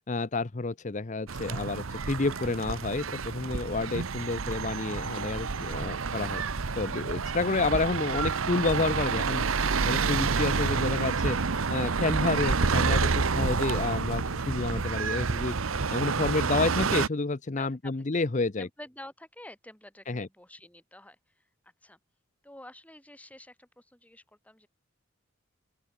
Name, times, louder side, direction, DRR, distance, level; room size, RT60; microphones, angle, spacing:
voice 1, 0.0-6.4 6.8-11.4 11.7-15.6 15.9-18.7 20.1-20.3, left 3 dB, 35° left, 0.7 m, -30 dB
sound 1, 1.3-17.1, right 4 dB, 80° right, 0.9 m, -29 dB
voice 2, 15.7-16.2 17.6-18.3 18.6-21.5 21.8-22.0 22.4-24.7, left 1 dB, 5° left, 6.5 m, -49 dB
open air
head